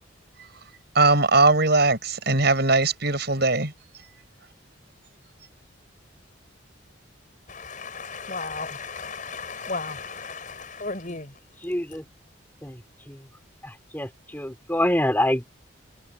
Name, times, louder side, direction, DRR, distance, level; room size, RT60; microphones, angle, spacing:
voice 1, 0.9-3.7, right 3 dB, 55° right, 7.6 m, -20 dB
voice 2, 7.5-11.4, left 4 dB, 40° left, 6.4 m, -34 dB
voice 3, 11.6-12.0 12.6-13.3 13.6-15.5, left 1 dB, 10° left, 4.3 m, -26 dB
head